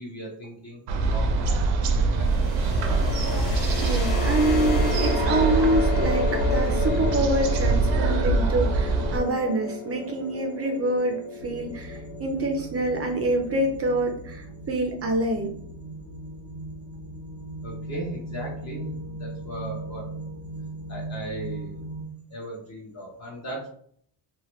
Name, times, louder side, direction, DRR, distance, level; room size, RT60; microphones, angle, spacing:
voice 1, 0.0-3.0 17.6-20.1 20.9-21.8 22.3-23.7, right 1 dB, 40° left, -3 dB, 0.7 m, -38 dB
sound 1, 0.9-9.2, right 3 dB, 80° right, 0.6 m, -23 dB
sound 2, 2.2-13.9, left 4 dB, 90° left, 1.5 m, -32 dB
voice 2, 3.8-15.5, right 1 dB, 35° right, 2 dB, 0.4 m, -26 dB
sound 3, 11.4-22.0, right 2 dB, 55° left, 1.2 m, -38 dB
2.8 x 2.1 x 3.0 m, 0.63 s
cardioid pair, 125°, 44 cm